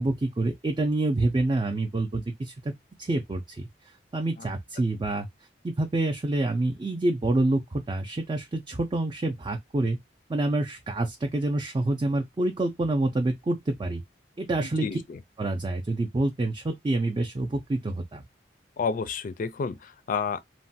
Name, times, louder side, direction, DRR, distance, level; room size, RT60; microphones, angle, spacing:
voice 1, 0.0-2.7 3.0-3.6 4.1-5.3 5.6-10.0 10.3-14.0 14.4-14.9 15.4-18.2, right 2 dB, 25° right, 0.4 m, -27 dB
voice 2, 14.8-15.2 18.8-20.4, left 5 dB, 50° left, 0.4 m, -30 dB
3.1 x 2.1 x 2.7 m
head